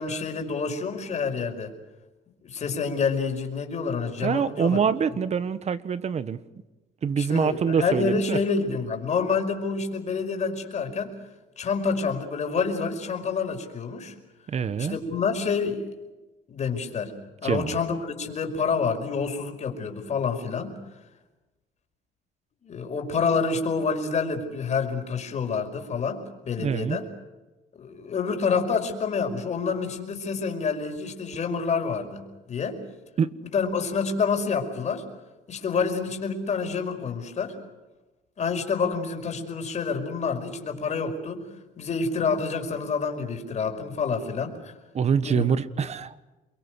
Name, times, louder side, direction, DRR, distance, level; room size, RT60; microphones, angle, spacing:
voice 1, 0.0-1.7 2.4-4.8 7.2-11.1 11.6-14.1 14.8-15.9 16.5-17.1 17.4-20.8 22.6-27.1 27.7-32.8 33.5-35.0 35.5-37.6 38.4-41.5 41.8-44.7 45.2-45.5, left 5 dB, 45° left, 4 dB, 5.2 m, -28 dB
voice 2, 4.2-6.4 7.0-8.4 14.5-15.0 17.4-17.7 26.6-27.0 33.2-33.3 44.9-46.2, right 7 dB, 40° right, 14 dB, 1.4 m, -25 dB
29.0 x 23.0 x 6.5 m, 1.1 s
cardioid pair, 110°, 17 cm